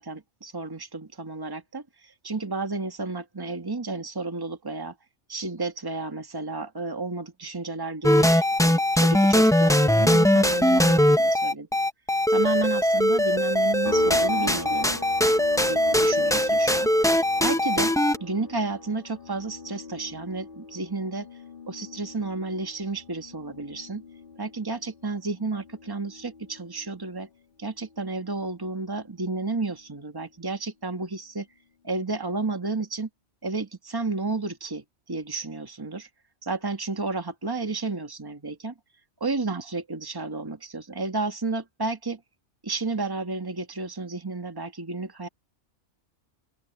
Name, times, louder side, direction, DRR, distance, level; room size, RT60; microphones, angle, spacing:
voice 1, 0.0-4.9 5.3-11.7 12.3-15.0 15.7-17.1 17.4-17.9 18.2-21.3 21.7-24.0 24.4-27.3 27.6-31.5 31.8-33.1 33.4-36.1 36.4-38.7 39.2-42.2 42.6-45.3, right 3 dB, 20° right, 1.7 m, -32 dB
sound 1, 8.0-18.2, left 1 dB, 5° left, 0.4 m, -21 dB
sound 2, 13.8-27.4 27.7-29.9, left 3 dB, 40° left, 2.4 m, -42 dB
open air
omnidirectional pair, 1.3 m